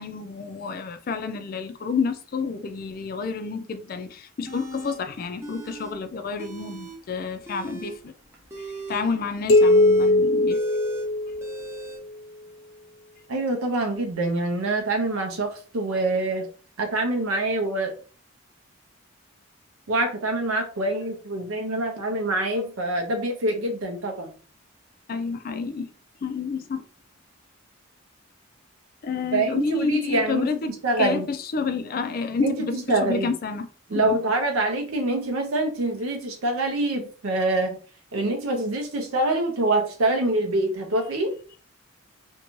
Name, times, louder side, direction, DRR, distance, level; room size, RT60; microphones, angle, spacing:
voice 1, 0.0-8.1 8.6-10.6 25.1-25.9 26.2-26.8 29.0-30.7 31.0-32.7 33.0-34.2, left 5 dB, 45° left, 0.3 m, -29 dB
sound 1, 4.5-5.0 5.4-5.9 6.2-7.0 7.4-12.0, right 2 dB, 10° right, 0.5 m, -39 dB
sound 2, 9.5-11.9, left 2 dB, 70° left, 0.7 m, -20 dB
voice 2, 13.3-16.5 16.8-17.9 19.9-24.3 29.3-31.3 32.4-33.3 33.9-37.8 38.1-41.4, right 2 dB, 80° right, 0.6 m, -25 dB
2.6 x 2.2 x 3.0 m
head